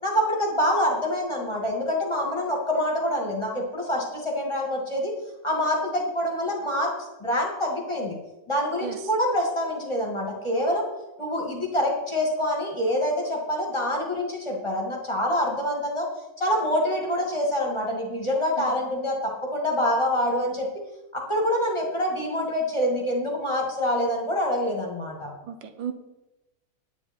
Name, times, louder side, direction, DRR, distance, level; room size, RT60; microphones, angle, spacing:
voice 1, 0.0-5.1 5.4-6.9 7.2-8.2 8.5-10.9 11.2-16.1 16.4-20.8 21.1-25.3, left 1 dB, 15° left, -2 dB, 2.4 m, -26 dB
voice 2, 25.5-25.9, right 8 dB, 85° right, 9 dB, 1.6 m, -35 dB
10.0 x 9.7 x 4.5 m, 0.99 s
omnidirectional pair, 2.0 m